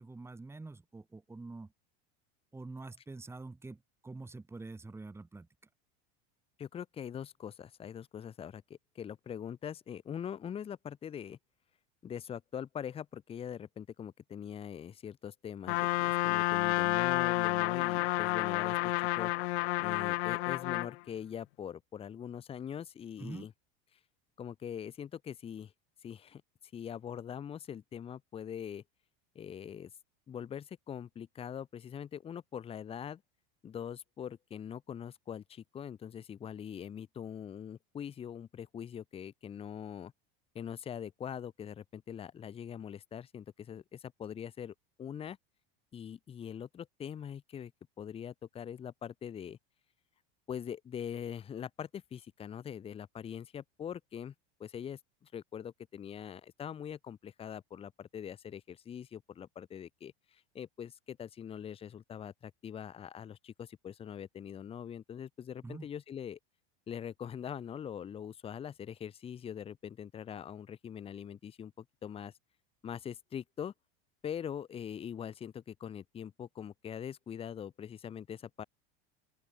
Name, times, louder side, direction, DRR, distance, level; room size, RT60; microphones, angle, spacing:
voice 1, 0.0-1.7 2.5-5.5 23.2-23.5 65.6-65.9, right 3 dB, 10° right, 4.2 m, -46 dB
voice 2, 6.6-11.4 12.0-19.3 19.8-23.5 24.4-25.7 26.0-26.4 26.7-28.8 29.3-29.9 30.3-33.2 33.6-40.1 40.5-45.4 45.9-47.7 48.0-49.6 50.5-54.3 54.6-66.4 66.9-72.3 72.8-73.7 74.2-78.6, left 8 dB, 20° left, 0.9 m, -43 dB
Trumpet, 15.7-20.9, left 22 dB, 85° left, 0.7 m, -30 dB
open air
supercardioid pair, 155°, 31 cm